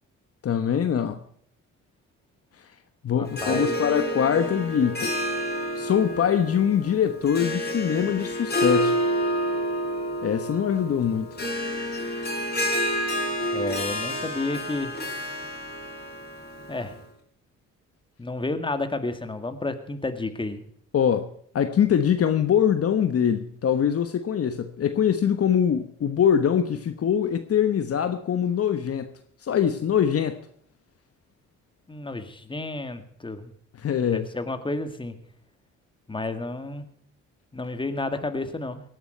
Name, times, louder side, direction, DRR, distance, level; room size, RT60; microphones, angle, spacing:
voice 1, 0.4-1.2 3.0-5.1 5.8-9.0 10.2-11.3 20.9-29.1 29.4-30.4 33.8-34.3, left 8 dB, 50° left, 1.2 m, -23 dB
voice 2, 3.2-3.8 13.5-14.9 16.7-16.9 18.2-20.7 31.9-33.5 34.1-35.2 36.1-36.9 37.5-38.8, left 2 dB, 15° left, 2.2 m, -31 dB
Harp, 3.3-17.0, equal, 35° left, 4.5 m, -29 dB
18.5 x 11.0 x 4.5 m
cardioid pair, 90°, 30 cm